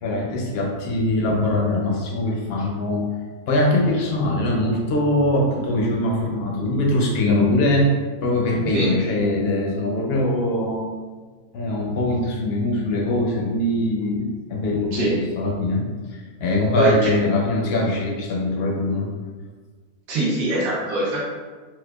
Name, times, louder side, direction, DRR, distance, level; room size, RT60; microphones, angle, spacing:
voice 1, 0.0-3.0 3.5-7.9 8.2-10.8 11.5-15.8 16.1-19.1, left 1 dB, 65° left, -1 dB, 0.6 m, -22 dB
voice 2, 16.8-17.1 20.1-21.2, right 1 dB, 75° right, -6 dB, 1.3 m, -22 dB
4.6 x 2.1 x 2.2 m, 1.4 s
omnidirectional pair, 1.5 m